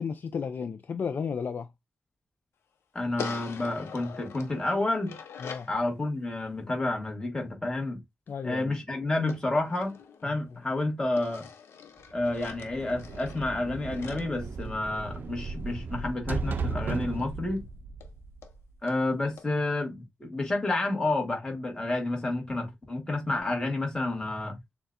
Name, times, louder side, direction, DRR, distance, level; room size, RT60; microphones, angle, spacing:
voice 1, 0.0-1.7 5.4-5.7 8.3-8.7, left 6 dB, 50° left, 0.4 m, -33 dB
voice 2, 2.9-5.2 5.7-8.0 8.4-10.0 10.2-11.5 12.1-17.6 18.8-24.6, left 2 dB, 15° left, 1.4 m, -30 dB
sound 1, 3.2-5.8 9.3-10.7 11.2-15.3 17.2-17.3 17.6-17.7 18.0-18.1 18.4-18.5 18.9-19.0 19.4-19.5, left 6 dB, 80° left, 0.7 m, -44 dB
sound 2, 12.2-18.9, right 4 dB, 50° right, 0.5 m, -36 dB
6.8 x 2.3 x 2.5 m
wide cardioid pair, 150°, 4 cm